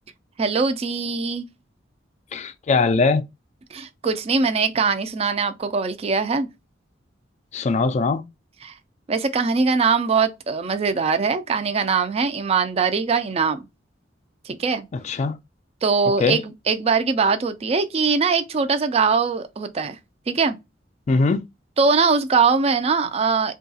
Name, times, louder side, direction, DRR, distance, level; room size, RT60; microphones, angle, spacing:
voice 1, 0.4-1.5 3.7-6.5 8.6-8.7 9.1-13.7 14.5-14.9 15.8-20.0 20.3-20.6 21.8-23.5, right 5 dB, 35° right, 0.4 m, -21 dB
voice 2, 2.3-3.2 7.5-8.2 14.9-15.4 16.2-16.4 21.1-21.4, left 4 dB, 40° left, 0.3 m, -21 dB
2.8 x 2.3 x 2.6 m
head